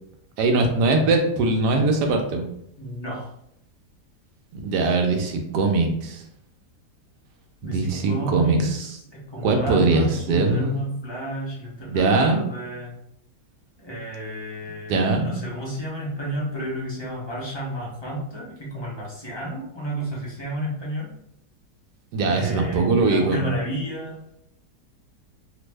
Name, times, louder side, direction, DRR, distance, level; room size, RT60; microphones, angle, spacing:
voice 1, 0.4-2.5 4.5-6.2 7.6-9.0 9.4-10.8 11.9-12.4 14.9-15.4 22.1-23.4, right 3 dB, 80° right, 3 dB, 1.2 m, -21 dB
voice 2, 2.8-3.3 7.6-8.8 9.1-12.9 13.8-21.1 22.2-24.2, equal, 45° left, -6 dB, 0.3 m, -31 dB
3.2 x 2.0 x 3.3 m, 0.73 s
omnidirectional pair, 1.8 m